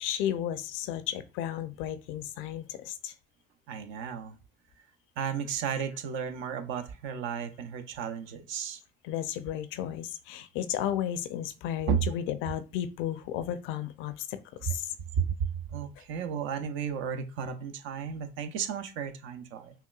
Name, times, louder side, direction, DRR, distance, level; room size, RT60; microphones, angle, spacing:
voice 1, 0.0-3.1 9.0-14.9, left 11 dB, 75° left, 0.5 m, -33 dB
voice 2, 3.7-4.4 5.2-8.8 11.9-12.0 14.7-14.8 15.2-19.7, right 7 dB, 75° right, 0.6 m, -33 dB
5.5 x 2.2 x 2.3 m
hypercardioid pair, 60°, 20 cm